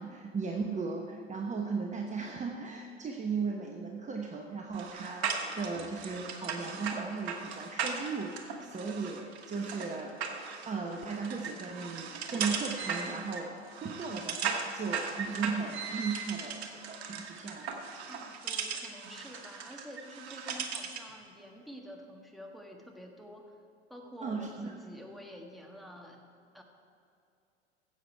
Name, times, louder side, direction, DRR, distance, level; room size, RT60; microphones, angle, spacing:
voice 1, 0.0-10.2 10.6-18.1 24.2-24.7, right 4 dB, 20° right, 1 dB, 1.1 m, -37 dB
sound 1, 4.7-21.1, right 6 dB, 70° right, 1.4 m, -38 dB
voice 2, 18.1-23.5 23.9-26.2 26.5-26.6, equal, ahead, 1 dB, 1.6 m, -48 dB
15.0 x 8.0 x 4.6 m, 2.6 s
hypercardioid pair, 80°, 33 cm